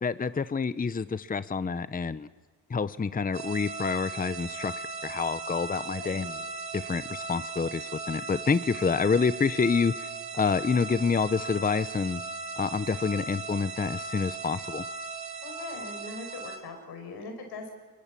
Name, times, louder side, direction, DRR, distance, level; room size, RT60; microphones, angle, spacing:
voice 1, 0.0-2.3 2.7-6.4 6.7-12.2 12.6-14.8, left 5 dB, 20° left, 15 dB, 0.8 m, -28 dB
sound 1, 3.3-16.6, right 4 dB, 85° right, 3.2 m, -38 dB
voice 2, 6.0-6.3 15.4-17.7, left 3 dB, 90° left, 5 dB, 6.2 m, -41 dB
29.0 x 22.5 x 7.6 m, 1.3 s
cardioid pair, 90°, 38 cm